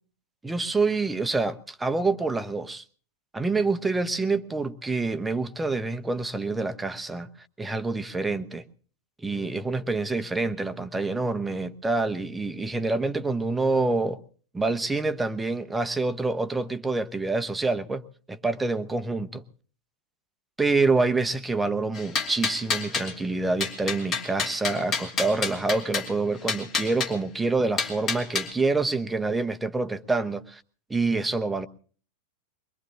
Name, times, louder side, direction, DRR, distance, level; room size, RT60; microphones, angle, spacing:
voice 1, 0.4-2.8 3.3-7.3 7.6-8.6 9.2-14.2 14.5-19.4 20.6-30.6 30.9-31.7, right 3 dB, 10° right, 0.9 m, -27 dB
sound 1, 21.9-23.1 23.6-26.1 26.5-27.1 27.8-28.5, left 5 dB, 30° left, 2.8 m, -28 dB
23.0 x 22.5 x 2.8 m
figure-of-eight pair, 90°, 0 cm